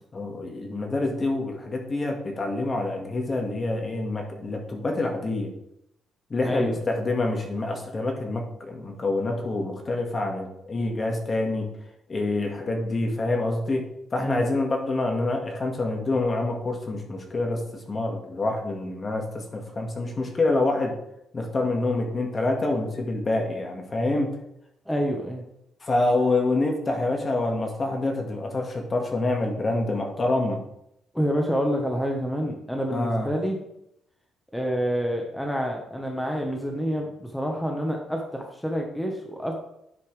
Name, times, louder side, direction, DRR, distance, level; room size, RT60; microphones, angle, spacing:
voice 1, 0.1-5.5 6.3-11.7 12.1-13.9 14.1-21.0 21.3-24.3 25.8-30.6 32.9-33.3, left 2 dB, 35° left, 2 dB, 1.8 m, -26 dB
voice 2, 6.4-6.7 14.2-14.4 24.9-25.4 31.1-33.6 34.5-39.6, equal, 5° left, 1 dB, 1.2 m, -27 dB
9.7 x 5.6 x 3.4 m, 0.79 s
cardioid pair, 90°, 0 cm